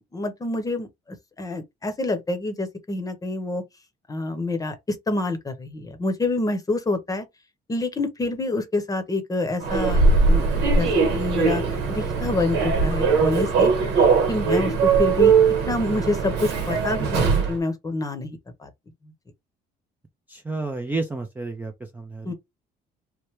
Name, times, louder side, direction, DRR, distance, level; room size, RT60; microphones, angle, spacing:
voice 1, 0.1-0.9 1.4-3.6 4.1-7.3 7.7-10.0 10.3-11.6 11.9-13.7 14.3-18.7 22.2-22.3, left 2 dB, 20° left, 0.8 m, -27 dB
Human voice / Subway metro underground, 9.6-17.6, right 5 dB, 85° right, 1.1 m, -20 dB
voice 2, 20.3-22.3, right 3 dB, 10° right, 0.4 m, -31 dB
3.2 x 2.1 x 3.0 m
cardioid pair, 110°, 17 cm